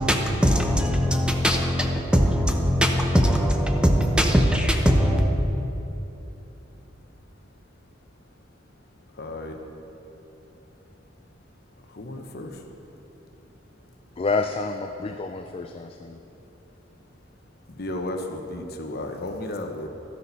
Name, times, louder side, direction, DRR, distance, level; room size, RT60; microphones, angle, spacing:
voice 1, 0.0-5.2, equal, 5° right, 2 dB, 0.8 m, -21 dB
voice 2, 9.2-9.6 11.9-12.6 17.8-19.9, left 1 dB, 55° left, 4 dB, 1.0 m, -33 dB
voice 3, 14.2-16.2, left 3 dB, 30° left, 5 dB, 0.4 m, -28 dB
12.5 x 10.5 x 4.1 m, 3.0 s
head